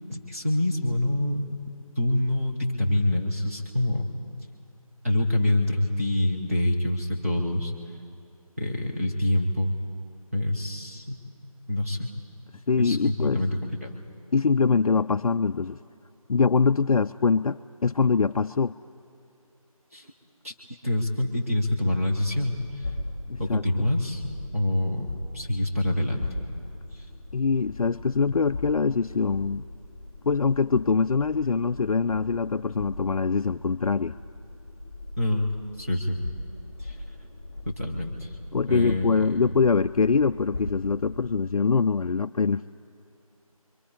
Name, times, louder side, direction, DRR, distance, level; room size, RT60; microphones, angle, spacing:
voice 1, 0.1-1.6 2.0-4.1 5.0-7.7 8.6-9.7 10.3-11.2 11.7-12.1 12.8-14.0 19.9-20.1 20.4-20.5 20.8-22.9 23.4-24.2 24.5-25.1 25.3-26.3 26.9-27.1 35.2-35.5 35.8-36.2 36.8-37.0 37.6-38.4 38.7-39.5, left 1 dB, 25° right, -2 dB, 1.1 m, -26 dB
voice 2, 12.7-13.4 14.3-15.8 16.3-18.7 23.3-23.6 27.3-29.6 30.2-34.2 38.5-42.6, left 5 dB, 70° left, 9 dB, 0.4 m, -23 dB
sound 1, 21.9-41.4, left 2 dB, 15° left, 2.0 m, -40 dB
29.0 x 23.0 x 4.9 m, 2.8 s
figure-of-eight pair, 175°, 19 cm